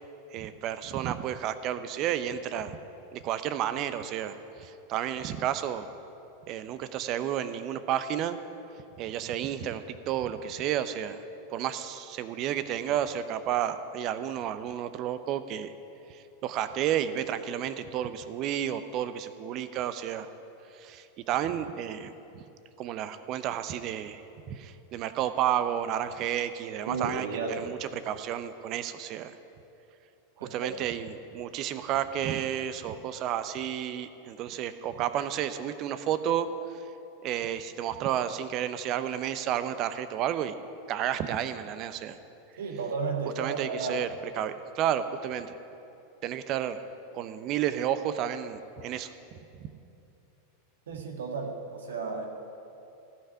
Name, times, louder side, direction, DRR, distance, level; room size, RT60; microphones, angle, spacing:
voice 1, 0.3-2.8 3.1-5.9 6.5-8.4 9.0-11.2 11.5-15.7 16.1-20.3 20.7-22.4 22.8-24.2 24.5-29.3 30.5-36.8 37.2-40.5 40.9-42.2 43.4-44.1 44.3-45.5 46.2-46.8 47.1-49.1 49.6-49.7, right 10 dB, 40° right, 12 dB, 0.7 m, -31 dB
voice 2, 26.8-27.7 30.4-30.7 42.6-44.0 50.9-52.3, right 4 dB, 70° right, 3 dB, 1.8 m, -33 dB
17.0 x 5.7 x 9.6 m, 2.8 s
figure-of-eight pair, 90°, 0 cm